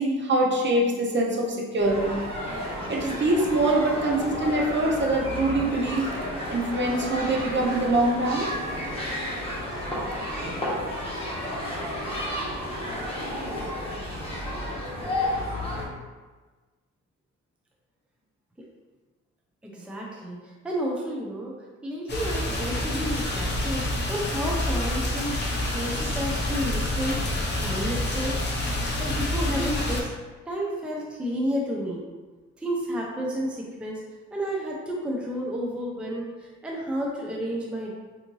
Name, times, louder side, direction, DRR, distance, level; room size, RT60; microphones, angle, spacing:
voice 1, 0.0-2.2 2.9-6.1 6.5-8.5, right 2 dB, 40° right, -1 dB, 0.7 m, -24 dB
sound 1, 1.8-15.9, left 1 dB, 20° left, 1.1 m, -32 dB
voice 2, 19.6-21.6 21.8-25.4 25.7-28.4 29.0-30.1 30.5-32.1 32.6-34.0 34.3-37.9, equal, 5° right, -3 dB, 0.5 m, -31 dB
sound 2, 22.1-30.0, left 1 dB, 35° left, 0.7 m, -28 dB
3.5 x 2.7 x 3.0 m, 1.3 s
cardioid pair, 90°, 30 cm